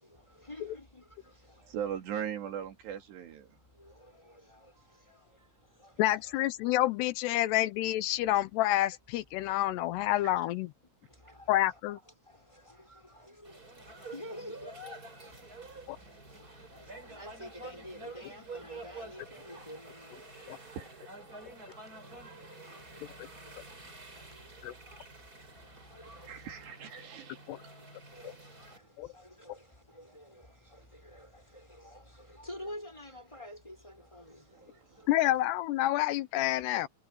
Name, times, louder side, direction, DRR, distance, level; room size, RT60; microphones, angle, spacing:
voice 1, 0.1-2.0 3.8-5.3 5.8-6.7 7.3-7.6 10.3-10.4 11.2-15.5 15.9-20.5 20.8-23.8 24.1-24.3 24.8-25.0 25.8-27.1 27.8-27.9 28.1-35.4, left 1 dB, 5° left, 6.5 m, -50 dB
voice 2, 1.7-3.5 10.2-10.3 20.7-21.1 26.3-27.4, right 9 dB, 90° right, 4.9 m, -38 dB
voice 3, 6.0-10.7 11.5-12.0 15.9-16.0 20.5-20.6 24.6-24.7 27.5-27.6 29.0-29.1 35.1-36.9, left 15 dB, 85° left, 3.0 m, -28 dB
sound 1, 13.4-28.8, right 2 dB, 20° right, 5.0 m, -49 dB
omnidirectional pair, 4.7 m